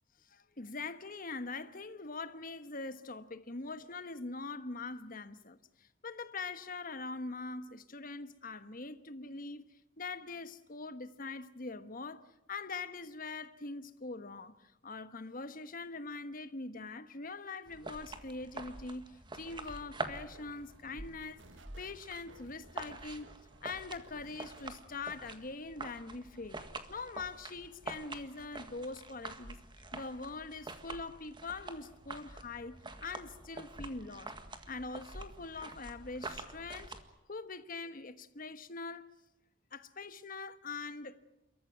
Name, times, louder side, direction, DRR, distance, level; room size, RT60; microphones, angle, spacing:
voice 1, 0.3-9.7 10.0-14.5 14.8-21.4 21.8-23.3 23.6-26.6 26.9-29.6 29.9-34.3 34.7-36.9 37.3-39.1 39.7-41.2, left 3 dB, 50° left, 1.3 m, -43 dB
sound 1, 17.7-37.0, right 2 dB, 25° right, 1.7 m, -46 dB
sound 2, 19.4-25.1, right 3 dB, 80° right, 1.7 m, -60 dB
29.5 x 14.0 x 9.2 m
head